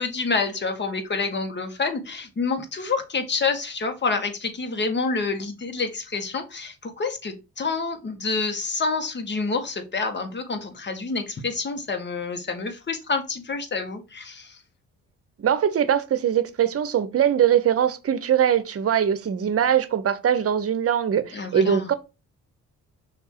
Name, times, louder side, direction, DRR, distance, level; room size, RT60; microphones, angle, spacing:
voice 1, 0.0-14.6 21.3-21.9, left 4 dB, 35° left, 1.6 m, -28 dB
voice 2, 15.4-21.9, right 9 dB, 50° right, 0.9 m, -22 dB
5.7 x 3.6 x 4.6 m
cardioid pair, 90°, 30 cm